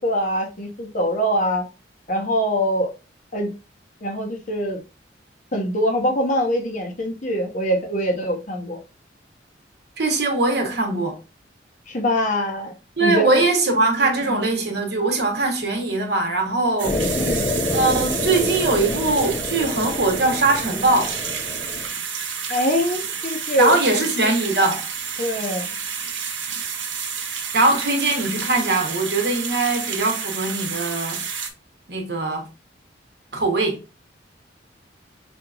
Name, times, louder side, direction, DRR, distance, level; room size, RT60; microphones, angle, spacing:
voice 1, 0.0-1.6 2.1-2.9 3.3-3.5 4.0-4.8 5.5-8.8 11.9-12.7 13.0-13.4 14.2-14.4 17.2-17.5 22.5-24.0 25.2-25.7, equal, 45° left, 1.0 m, -23 dB
voice 2, 10.0-11.2 13.0-17.3 17.7-21.2 23.6-24.9 27.5-31.3 31.9-32.5 33.3-33.8, right 2 dB, 60° right, 1.1 m, -21 dB
sound 1, 16.8-21.9, left 2 dB, 20° left, 0.6 m, -27 dB
sound 2, 16.8-31.5, right 6 dB, 85° right, 0.8 m, -30 dB
5.5 x 2.9 x 2.4 m
head